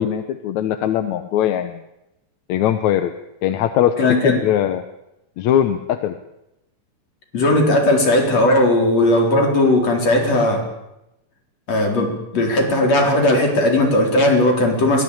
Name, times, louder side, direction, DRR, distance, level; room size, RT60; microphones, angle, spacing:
voice 1, 0.0-1.8 2.5-3.1 3.4-3.9 4.2-4.8 5.4-6.1, left 10 dB, 70° left, 9 dB, 2.1 m, -20 dB
voice 2, 4.0-4.4 7.3-10.6 11.7-15.0, left 1 dB, 50° left, 2 dB, 5.3 m, -17 dB
22.5 x 18.5 x 8.7 m, 0.89 s
omnidirectional pair, 3.7 m